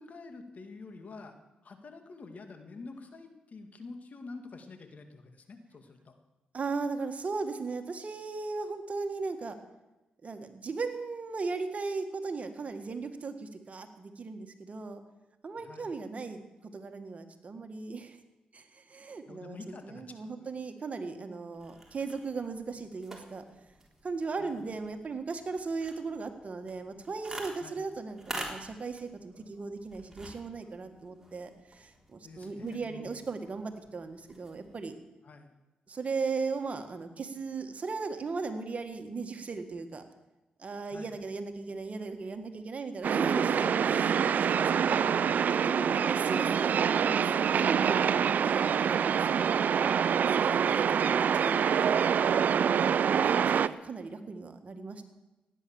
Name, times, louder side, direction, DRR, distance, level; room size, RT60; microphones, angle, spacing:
voice 1, 0.0-1.4 1.6-6.2 15.6-15.9 19.3-20.3 24.4-24.6 27.6-27.8 32.2-33.2 35.2-35.5 40.9-41.2 45.7-46.0 48.6-48.9 50.4-50.7, left 3 dB, 55° left, 7 dB, 2.1 m, -47 dB
voice 2, 6.5-9.6 10.2-15.0 15.4-18.2 18.5-23.4 24.0-34.9 35.9-40.0 40.6-45.1 45.5-48.1 48.4-49.5 50.2-52.0 53.1-53.3 53.7-55.0, right 4 dB, 45° right, 7 dB, 1.8 m, -37 dB
sound 1, 21.5-34.9, right 1 dB, 15° right, 3.8 m, -48 dB
sound 2, 43.0-53.7, right 7 dB, 65° right, 0.5 m, -26 dB
16.0 x 9.9 x 7.2 m, 1.0 s
cardioid pair, 60°, 3 cm